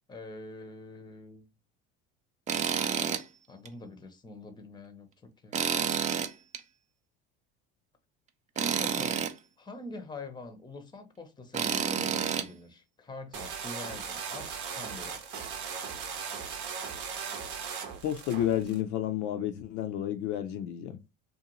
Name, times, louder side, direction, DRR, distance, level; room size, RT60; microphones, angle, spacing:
voice 1, 0.1-1.5 3.5-5.6 8.5-9.2 9.6-15.2, left 2 dB, 15° left, 0.6 m, -44 dB
Tools, 2.5-3.2 3.6-3.7 5.5-6.6 8.6-9.3 11.5-12.5, right 7 dB, 25° right, 0.3 m, -29 dB
sound 1, 13.3-18.8, right 6 dB, 65° right, 0.7 m, -38 dB
voice 2, 18.0-21.0, left 11 dB, 60° left, 0.5 m, -31 dB
2.5 x 2.2 x 2.9 m
hypercardioid pair, 80°, 32 cm